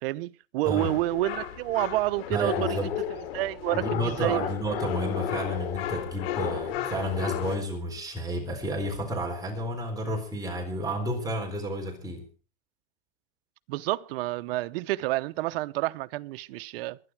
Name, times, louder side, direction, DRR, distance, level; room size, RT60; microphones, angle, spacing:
voice 1, 0.0-4.4 13.7-17.0, right 18 dB, 70° right, 0.8 m, -29 dB
sound 1, 0.8-7.6, left 10 dB, 75° left, 3.1 m, -33 dB
voice 2, 2.3-2.9 3.7-12.2, equal, 10° right, 3.9 m, -31 dB
23.0 x 10.0 x 4.6 m
supercardioid pair, 145°, 30 cm